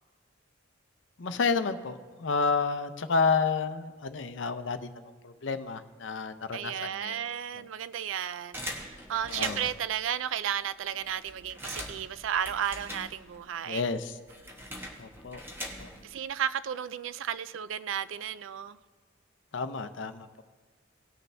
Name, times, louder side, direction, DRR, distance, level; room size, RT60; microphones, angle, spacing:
voice 1, 1.2-7.2 7.5-7.7 9.3-9.6 13.7-14.2 15.0-15.4 15.8-15.9 19.5-20.4, left 4 dB, 65° left, 0.6 m, -30 dB
voice 2, 6.5-13.8 16.0-18.8, right 9 dB, 75° right, 0.4 m, -33 dB
sound 1, 8.5-9.9 10.5-10.6 10.8-13.5 13.8-16.1, equal, 10° right, 1.3 m, -41 dB
18.5 x 6.7 x 3.3 m
head